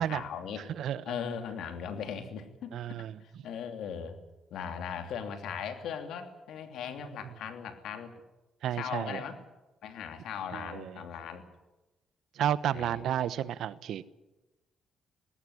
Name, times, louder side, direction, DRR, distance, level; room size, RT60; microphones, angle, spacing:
voice 1, 0.0-0.6 1.1-4.2 4.5-8.1 8.7-9.4 9.8-11.4 12.7-13.0, left 7 dB, 80° left, 7 dB, 3.0 m, -39 dB
voice 2, 2.7-3.2 8.6-9.2 10.5-11.0 12.4-14.1, right 10 dB, 75° right, 16 dB, 1.0 m, -32 dB
19.0 x 17.5 x 9.9 m, 1.1 s
cardioid pair, 90°, 0 cm